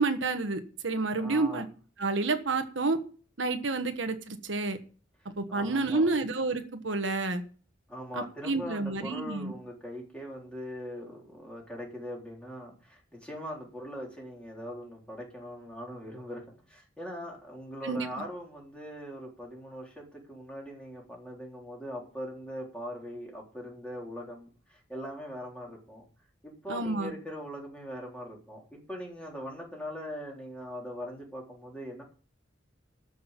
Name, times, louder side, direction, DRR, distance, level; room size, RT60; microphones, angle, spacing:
voice 1, 0.0-1.6 2.0-3.0 3.4-4.8 5.4-7.4 8.2-9.5 17.8-18.3 26.7-27.1, right 3 dB, 80° right, 7 dB, 1.3 m, -29 dB
voice 2, 1.2-1.7 3.7-3.8 5.5-6.1 7.9-16.4 16.7-26.0 26.4-32.0, equal, 5° left, -2 dB, 3.9 m, -41 dB
13.0 x 6.3 x 7.4 m, 0.40 s
head